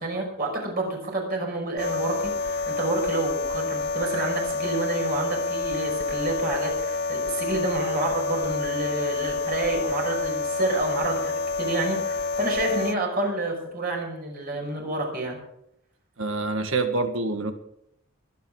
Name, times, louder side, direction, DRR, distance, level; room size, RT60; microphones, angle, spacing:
voice 1, 0.0-15.4, right 2 dB, 45° right, 1 dB, 5.7 m, -29 dB
sound 1, 1.8-12.9, left 3 dB, 55° left, 0.8 m, -28 dB
voice 2, 16.2-17.5, right 3 dB, 75° right, 7 dB, 1.8 m, -26 dB
24.0 x 9.2 x 4.9 m, 0.76 s
head